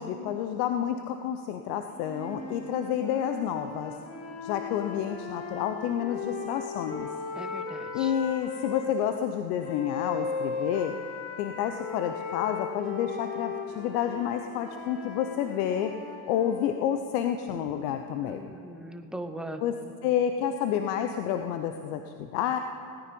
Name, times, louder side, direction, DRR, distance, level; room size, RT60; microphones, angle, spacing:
voice 1, 0.0-4.0 4.4-7.1 7.9-10.9 11.4-15.9 16.3-18.5 19.6-22.6, left 9 dB, 75° left, 7 dB, 0.8 m, -29 dB
sound 1, 2.0-8.9 9.6-16.8, left 5 dB, 50° left, 2.2 m, -37 dB
voice 2, 7.4-8.1 18.2-19.6, right 1 dB, ahead, 6 dB, 0.9 m, -40 dB
17.0 x 9.8 x 5.3 m, 2.5 s
hypercardioid pair, 90°, 49 cm